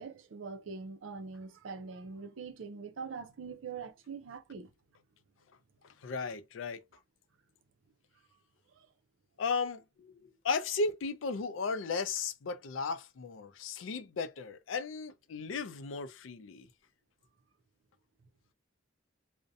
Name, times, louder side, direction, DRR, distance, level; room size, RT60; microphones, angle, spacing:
voice 1, 0.0-4.7 8.8-8.9, right 5 dB, 85° right, 0.5 m, -43 dB
voice 2, 6.0-6.8 9.4-16.7, left 4 dB, 85° left, 0.4 m, -35 dB
2.6 x 2.1 x 2.5 m
head